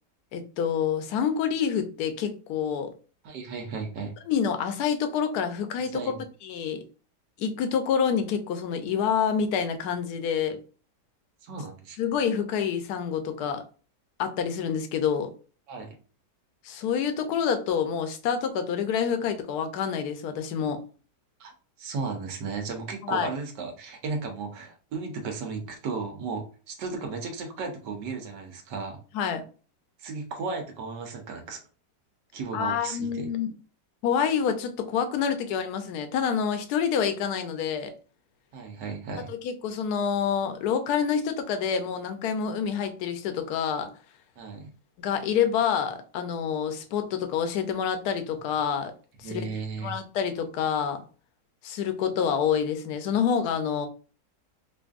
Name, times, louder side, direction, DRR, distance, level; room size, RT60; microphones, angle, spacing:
voice 1, 0.3-2.9 4.3-6.1 6.4-6.8 7.4-10.6 12.0-13.6 14.2-15.3 16.6-20.8 23.0-23.3 29.1-29.4 32.5-33.5 34.0-37.9 39.3-43.9 45.0-48.9 49.2-49.5 49.8-51.0 51.6-53.9, left 7 dB, 70° left, 1.1 m, -27 dB
voice 2, 3.2-4.1 5.9-6.2 11.4-12.0 15.7-16.0 21.4-21.5 21.8-29.0 30.0-31.6 32.3-33.3 38.5-39.3 44.4-44.7 49.2-50.0, right 4 dB, 80° right, 1.4 m, -35 dB
5.1 x 2.5 x 2.4 m
omnidirectional pair, 1.9 m